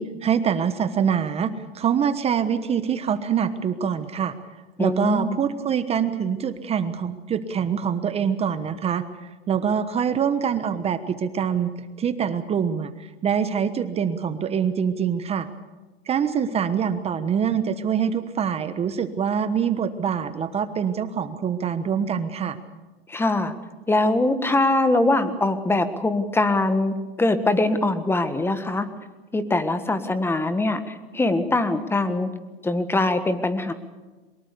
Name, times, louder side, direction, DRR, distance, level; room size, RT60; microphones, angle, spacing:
voice 1, 0.0-4.3 4.8-9.0 9.5-11.7 12.0-12.9 13.2-15.5 16.1-22.6, right 7 dB, 20° right, 11 dB, 1.2 m, -24 dB
voice 2, 4.8-5.4 23.1-23.5 23.9-28.9 29.3-32.3 32.6-33.7, left 2 dB, 10° left, 10 dB, 1.6 m, -22 dB
23.5 x 21.0 x 6.9 m, 1.2 s
hypercardioid pair, 130°, 30 cm